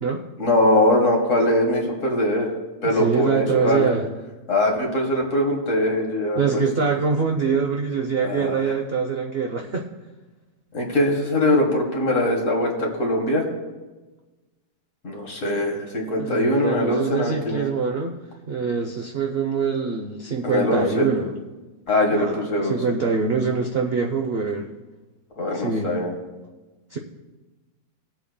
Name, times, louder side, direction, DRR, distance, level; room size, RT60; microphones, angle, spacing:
voice 1, 0.4-2.5 2.8-3.9 4.5-6.6 8.2-8.6 10.7-13.5 15.0-17.7 20.4-21.1 21.9-22.8 25.4-26.1, left 1 dB, 45° left, 0 dB, 1.9 m, -22 dB
voice 2, 2.8-4.1 6.4-9.9 16.2-18.2 18.5-21.4 22.1-22.4 22.7-24.7 25.5-25.9 26.9-27.0, right 5 dB, 55° right, 2 dB, 0.7 m, -24 dB
20.0 x 7.9 x 2.3 m, 1.2 s
omnidirectional pair, 1.9 m